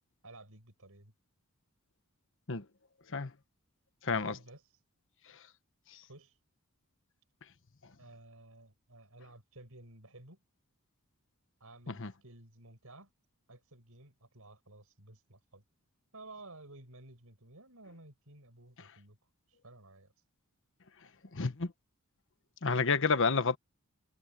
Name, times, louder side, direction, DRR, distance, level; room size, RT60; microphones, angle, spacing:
voice 1, 0.2-1.1 4.1-4.8 6.0-6.4 8.0-10.4 11.6-13.1 13.5-15.6 16.1-19.2 19.6-20.1, right 2 dB, 70° right, 6.5 m, -54 dB
voice 2, 4.0-4.4 12.0-12.1 21.3-21.7 22.6-23.6, left 4 dB, 60° left, 1.2 m, -29 dB
head